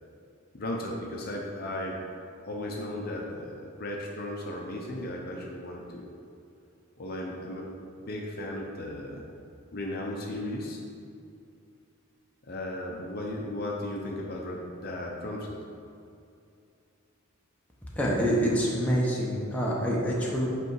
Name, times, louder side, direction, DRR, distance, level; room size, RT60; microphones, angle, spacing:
voice 1, 0.5-2.0 2.4-6.1 7.0-7.7 8.0-9.3 9.7-10.8 12.5-15.6, left 1 dB, 45° left, -1 dB, 0.7 m, -35 dB
voice 2, 18.0-20.5, equal, 5° left, -5 dB, 0.9 m, -26 dB
8.3 x 3.4 x 4.7 m, 2.6 s
head